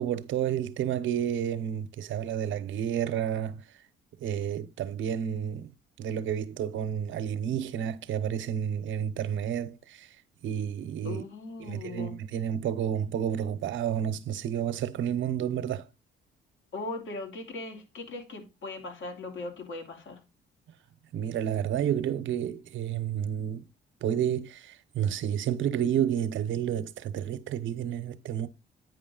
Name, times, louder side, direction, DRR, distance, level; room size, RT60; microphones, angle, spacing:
voice 1, 0.0-3.6 4.2-5.7 6.0-10.2 10.4-11.2 11.6-15.9 21.1-23.6 24.0-28.5, right 9 dB, 75° right, 0.9 m, -30 dB
voice 2, 11.0-12.1 16.7-20.2, left 3 dB, 70° left, 2.9 m, -39 dB
9.4 x 5.1 x 3.8 m
cardioid pair, 90°, 20 cm